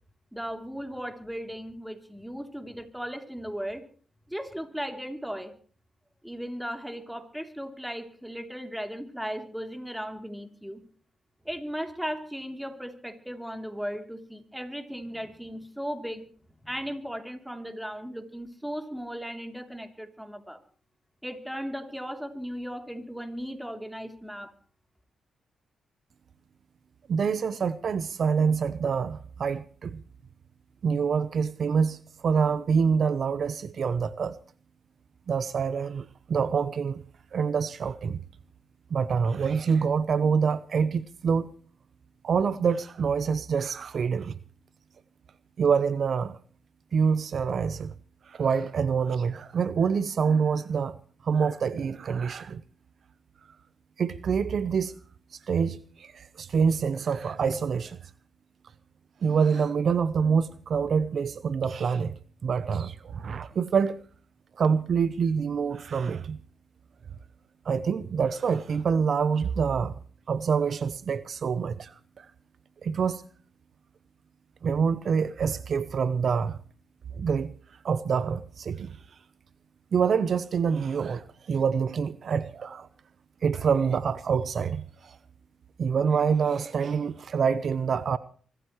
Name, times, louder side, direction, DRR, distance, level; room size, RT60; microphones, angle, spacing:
voice 1, 0.3-3.8 4.3-5.5 6.2-10.8 11.4-16.3 16.6-20.6 21.2-24.5, equal, 5° right, 3.1 m, -36 dB
voice 2, 27.1-30.0 30.8-34.4 35.3-37.0 37.3-38.2 38.9-41.5 42.2-44.4 45.6-46.4 46.9-47.9 48.3-51.0 51.2-52.6 54.0-55.0 55.5-58.0 59.2-64.0 64.6-66.4 67.6-69.9 70.3-72.3 72.8-73.2 74.6-76.6 77.1-77.5 77.8-79.0 79.9-82.9 83.4-85.2 85.8-88.2, right 6 dB, 60° right, 0.7 m, -26 dB
25.0 x 14.0 x 3.1 m
supercardioid pair, 60°, 0 cm